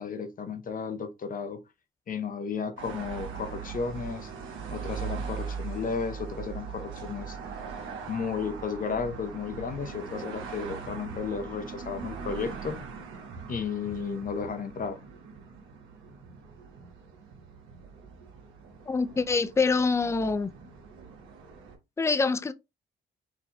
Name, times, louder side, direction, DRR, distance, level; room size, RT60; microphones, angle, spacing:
voice 1, 0.0-1.6 2.1-4.3 4.7-7.4 8.1-12.8 13.5-15.0, left 5 dB, 45° left, 0.7 m, -33 dB
sound 1, 2.8-21.8, right 6 dB, 80° right, 1.1 m, -41 dB
voice 2, 18.9-20.5 22.0-22.5, left 4 dB, 15° left, 0.4 m, -25 dB
4.7 x 2.6 x 2.2 m
cardioid pair, 90°, 20 cm